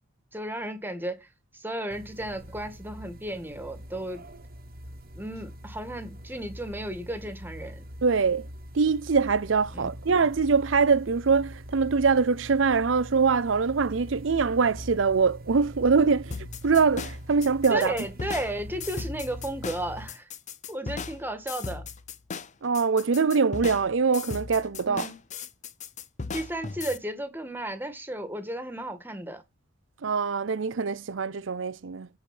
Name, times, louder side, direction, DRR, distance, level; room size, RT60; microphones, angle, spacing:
voice 1, 0.3-1.3 1.5-4.2 5.1-7.8 9.7-9.9 17.7-20.3 20.7-21.8 24.9-25.2 26.3-29.4, right 1 dB, 10° right, 1.7 m, -34 dB
sound 1, 1.9-20.1, equal, 50° right, 1.3 m, -43 dB
voice 2, 8.0-8.5 8.7-18.0 22.6-25.1 30.0-32.1, right 5 dB, 75° right, 0.6 m, -23 dB
sound 2, 16.3-27.0, left 5 dB, 40° left, 0.6 m, -37 dB
9.3 x 4.9 x 6.0 m
head